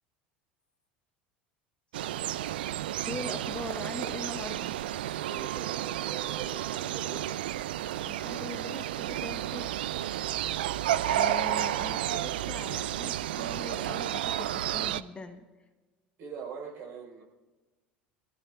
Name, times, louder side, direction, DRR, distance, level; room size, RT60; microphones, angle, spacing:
sound 1, 1.9-15.0, right 12 dB, 70° right, 0.3 m, -32 dB
voice 1, 3.0-4.7 8.0-9.7 11.1-15.5, left 3 dB, 20° left, 8 dB, 0.9 m, -41 dB
voice 2, 5.2-7.2 16.2-17.2, right 6 dB, 50° right, -1 dB, 4.2 m, -42 dB
24.5 x 15.0 x 2.4 m, 1.2 s
figure-of-eight pair, 70°, 5 cm